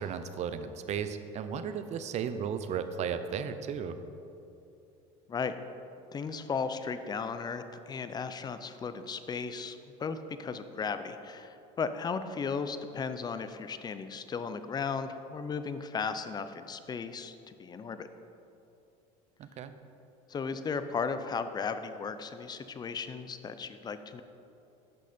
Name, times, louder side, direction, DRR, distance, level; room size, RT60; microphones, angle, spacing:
voice 1, 0.0-4.0 19.4-19.7, right 7 dB, 45° right, 10 dB, 0.6 m, -35 dB
voice 2, 6.1-18.1 20.3-24.2, left 5 dB, 25° left, 10 dB, 0.5 m, -36 dB
10.0 x 6.5 x 4.3 m, 2.8 s
supercardioid pair, 100°, 16 cm